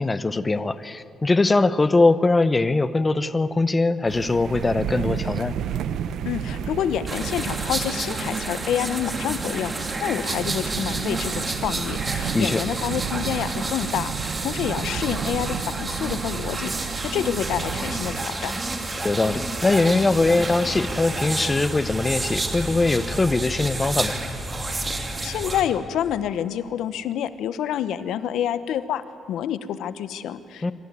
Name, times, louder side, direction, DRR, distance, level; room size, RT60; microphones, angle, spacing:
voice 1, 0.0-5.5 12.3-12.6 19.0-24.2 30.6-30.7, left 3 dB, 25° left, 14 dB, 0.9 m, -21 dB
sound 1, 4.1-18.2, right 8 dB, 75° right, 0.9 m, -32 dB
voice 2, 6.2-18.5 24.7-30.7, left 10 dB, 80° left, 14 dB, 0.8 m, -28 dB
sound 2, 7.1-25.6, right 2 dB, 25° right, 2.6 m, -30 dB
26.0 x 13.5 x 9.6 m, 2.5 s
cardioid pair, 90°, 0 cm